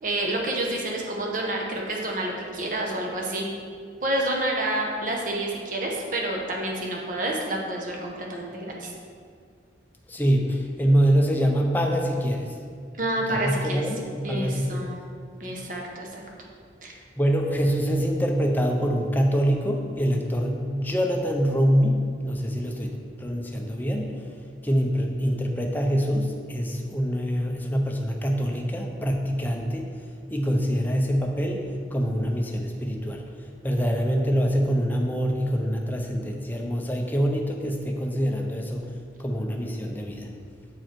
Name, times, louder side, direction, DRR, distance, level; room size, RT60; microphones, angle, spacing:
voice 1, 0.0-3.5 4.0-8.9 13.0-13.8 14.2-15.0 15.4-16.2 16.8-17.0, right 1 dB, 45° right, -1 dB, 1.1 m, -29 dB
voice 2, 10.1-12.5 13.3-14.8 17.2-24.2 24.6-29.9 30.3-38.9 39.2-40.3, equal, 10° left, 1 dB, 0.6 m, -25 dB
7.6 x 4.6 x 4.5 m, 2.2 s
head